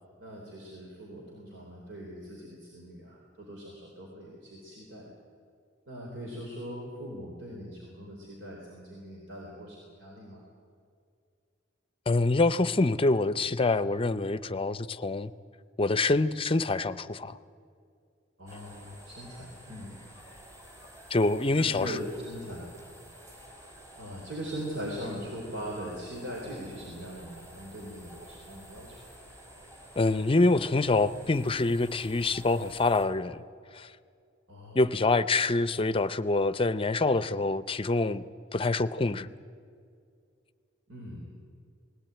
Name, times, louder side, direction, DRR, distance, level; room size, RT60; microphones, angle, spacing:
voice 1, 0.2-5.1 5.9-10.4 18.4-19.9 21.5-22.7 24.0-29.0 34.5-34.9 40.9-41.3, equal, 80° right, 3.9 m, -41 dB
voice 2, 12.1-15.3 15.8-17.4 21.1-22.0 30.0-33.4 33.7-33.9 34.7-38.2 38.5-39.3, left 2 dB, 30° left, 0.6 m, -26 dB
sound 1, 18.5-33.0, right 1 dB, 15° right, 3.9 m, -51 dB
20.0 x 17.0 x 9.0 m
head